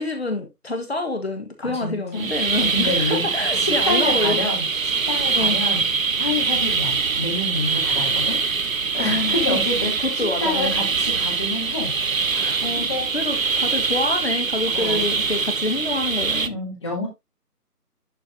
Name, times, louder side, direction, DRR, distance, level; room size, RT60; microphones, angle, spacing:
voice 1, 0.0-4.4 5.3-5.6 9.0-9.6 10.0-10.7 12.6-12.9 13.1-16.5, left 2 dB, 40° left, 1.5 m, -27 dB
voice 2, 1.6-2.3 2.7-3.3 3.5-5.9 6.2-8.4 8.9-11.9 12.3-13.1 14.7-15.0 16.4-17.1, left 2 dB, 20° left, 2.3 m, -28 dB
sound 1, 2.1-16.5, right 5 dB, 55° right, 0.8 m, -23 dB
11.0 x 4.3 x 3.6 m
figure-of-eight pair, 170°, 48 cm